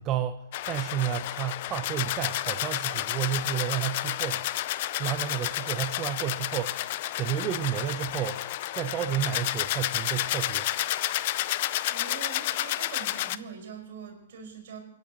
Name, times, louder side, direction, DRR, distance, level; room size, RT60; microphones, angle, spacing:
voice 1, 0.0-4.5 5.0-6.9 7.2-8.4 8.7-10.7, right 10 dB, 30° right, 9 dB, 0.6 m, -31 dB
sound 1, 0.5-13.4, left 15 dB, 50° left, 0.5 m, -31 dB
voice 2, 11.9-14.8, right 6 dB, 65° right, 3 dB, 5.0 m, -43 dB
28.5 x 10.5 x 3.1 m, 0.77 s
hypercardioid pair, 115°, 0 cm